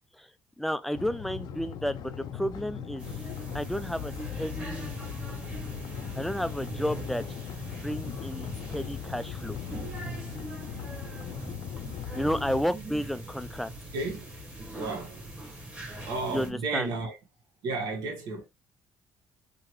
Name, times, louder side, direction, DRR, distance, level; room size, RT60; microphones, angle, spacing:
voice 1, 0.6-3.0 3.5-5.0 6.2-7.2 7.7-9.6 12.1-13.7 16.3-16.9, equal, ahead, 0.4 m, -32 dB
sound 1, 0.9-12.6, left 9 dB, 65° left, 0.5 m, -40 dB
sound 2, 3.0-16.5, equal, 15° right, 1.2 m, -40 dB
voice 2, 13.9-14.3 14.7-15.1 16.0-17.1 17.6-18.5, right 3 dB, 70° right, 1.2 m, -32 dB
3.8 x 2.2 x 3.0 m
cardioid pair, 95°, 8 cm